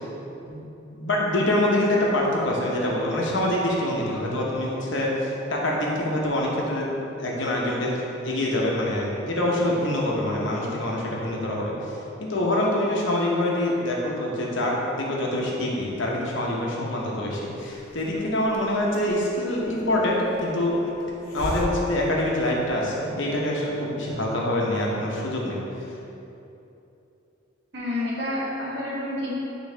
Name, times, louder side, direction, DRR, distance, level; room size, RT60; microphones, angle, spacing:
voice 1, 0.9-6.9 7.2-8.0 8.2-11.7 12.2-20.8 21.3-25.6, left 1 dB, 60° left, -3 dB, 0.9 m, -25 dB
Hiss, 17.5-23.0, left 1 dB, 85° left, 0.7 m, -39 dB
voice 2, 27.7-29.4, left 1 dB, 55° right, -7 dB, 1.3 m, -29 dB
9.0 x 3.1 x 3.3 m, 2.9 s
head